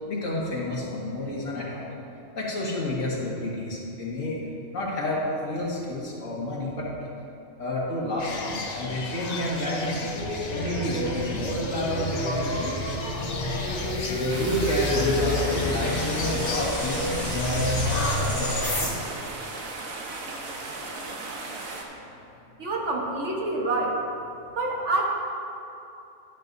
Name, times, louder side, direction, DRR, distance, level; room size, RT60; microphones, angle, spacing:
voice 1, 0.1-1.8 2.4-4.4 4.7-6.9 7.6-13.3 14.1-19.1, left 1 dB, 75° left, -5 dB, 2.1 m, -30 dB
sound 1, 8.2-18.2, left 3 dB, 40° left, 0.6 m, -34 dB
sound 2, 10.2-18.9, equal, 25° left, 1.9 m, -28 dB
sound 3, 14.3-21.8, right 3 dB, 85° right, 1.4 m, -36 dB
voice 2, 22.6-24.0 24.6-25.0, right 2 dB, 60° right, -2 dB, 1.5 m, -27 dB
11.5 x 9.7 x 2.6 m, 2.8 s
omnidirectional pair, 1.4 m